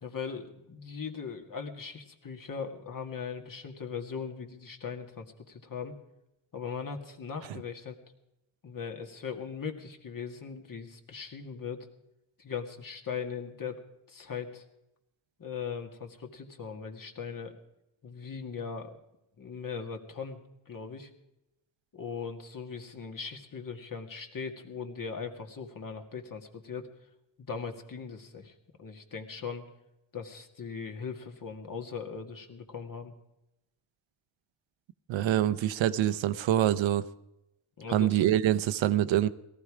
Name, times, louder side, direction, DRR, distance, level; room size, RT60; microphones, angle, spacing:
voice 1, 0.0-6.0 6.5-8.0 8.6-11.9 12.4-13.8 14.1-14.7 15.4-17.6 18.0-19.0 19.4-20.4 20.7-21.1 21.9-26.9 27.4-29.6 30.1-33.1 37.8-38.2, left 6 dB, 45° left, 4 dB, 2.1 m, -39 dB
voice 2, 35.1-37.1 37.9-39.3, right 12 dB, 80° right, 14 dB, 0.7 m, -25 dB
17.5 x 14.0 x 4.9 m, 0.90 s
cardioid pair, 75°, 45 cm